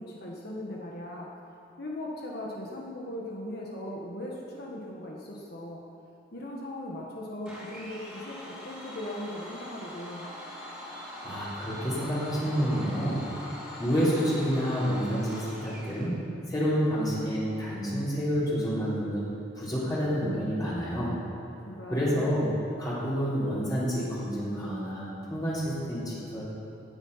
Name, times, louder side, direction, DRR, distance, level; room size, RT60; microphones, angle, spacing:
voice 1, 0.0-1.3 1.8-5.8 6.3-10.3 21.6-22.3, left 1 dB, 55° left, -2 dB, 1.6 m, -39 dB
Domestic sounds home sounds, 7.4-16.1, left 1 dB, 5° right, 3.3 m, -42 dB
voice 2, 10.9-16.2 16.5-21.2 21.9-22.5 22.8-26.4, equal, 20° left, -10 dB, 4.1 m, -29 dB
18.0 x 9.6 x 5.7 m, 2.8 s
head